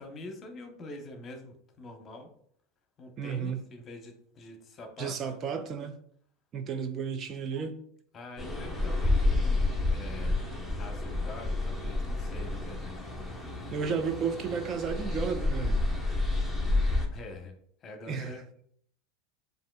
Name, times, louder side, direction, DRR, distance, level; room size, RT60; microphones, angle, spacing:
voice 1, 0.0-2.3 3.0-5.2 8.1-10.5 10.8-13.2 17.1-18.5, left 2 dB, 35° left, 0.9 m, -45 dB
voice 2, 3.2-3.6 5.0-6.0 6.5-7.8 13.7-15.9 18.1-18.3, right 6 dB, 40° right, 0.4 m, -32 dB
sound 1, 8.4-17.1, left 2 dB, 5° right, 1.0 m, -29 dB
7.2 x 2.6 x 2.3 m
hypercardioid pair, 85°, 0 cm